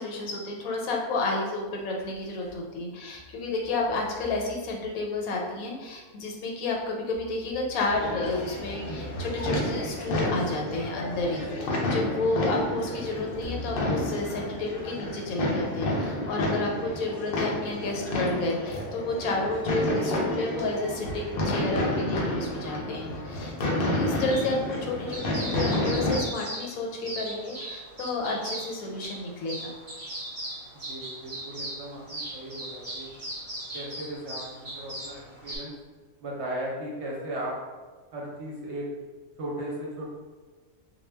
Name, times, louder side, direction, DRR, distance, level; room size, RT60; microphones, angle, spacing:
voice 1, 0.0-29.7, left 2 dB, 85° left, 0 dB, 1.0 m, -31 dB
sound 1, 1.7-2.6 3.1-5.5 6.7-11.1 11.9-12.0 13.4-15.3, right 1 dB, 20° left, 0.8 m, -46 dB
sound 2, 7.9-26.2, left 1 dB, 65° left, 0.5 m, -30 dB
sound 3, 24.2-35.6, right 1 dB, 30° right, 0.8 m, -39 dB
voice 2, 30.9-33.1 33.7-35.7 36.2-37.5 38.1-38.9 39.4-40.0, right 1 dB, 65° right, -3 dB, 0.8 m, -36 dB
2.2 x 2.1 x 3.2 m, 1.3 s
omnidirectional pair, 1.4 m